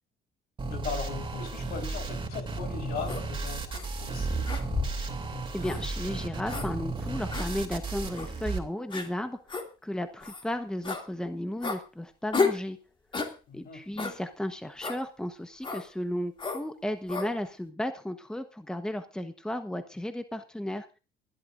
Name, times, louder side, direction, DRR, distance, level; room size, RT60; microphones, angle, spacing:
voice 1, 0.6-4.5 13.5-13.8, left 6 dB, 65° left, 4 dB, 4.3 m, -39 dB
sound 1, 0.6-8.6, right 3 dB, 30° right, 3.0 m, -34 dB
sound 2, 3.1-3.2 3.7-3.9 4.5-5.0 5.6-5.8 6.5-6.7 7.3-7.5 8.1-8.3 8.9-9.1 9.5-9.7 10.2-10.4 10.8-11.0 11.6-11.8 12.3-12.6 13.1-13.3 14.0-14.2 14.8-15.0 15.6-15.9 16.4-16.6 17.1-17.3, left 4 dB, 30° left, 2.6 m, -31 dB
voice 2, 5.5-9.4 9.8-12.8 13.2-20.9, left 1 dB, 5° left, 8 dB, 1.1 m, -34 dB
28.5 x 11.5 x 2.6 m, 0.31 s
cardioid pair, 110°, 17 cm